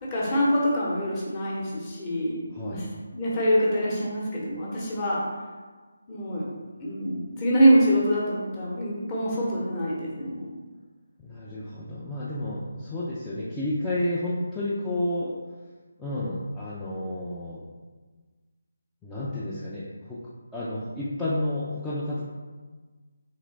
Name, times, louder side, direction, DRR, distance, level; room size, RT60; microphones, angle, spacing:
voice 1, 0.0-2.8 3.1-5.2 6.1-6.5 6.8-10.5, equal, 20° left, -6 dB, 0.9 m, -25 dB
voice 2, 2.5-2.8 11.2-15.3 16.0-17.6 19.0-20.2 20.5-22.2, left 1 dB, 5° left, -10 dB, 0.4 m, -31 dB
3.7 x 3.2 x 3.2 m, 1.4 s
figure-of-eight pair, 150°, 0 cm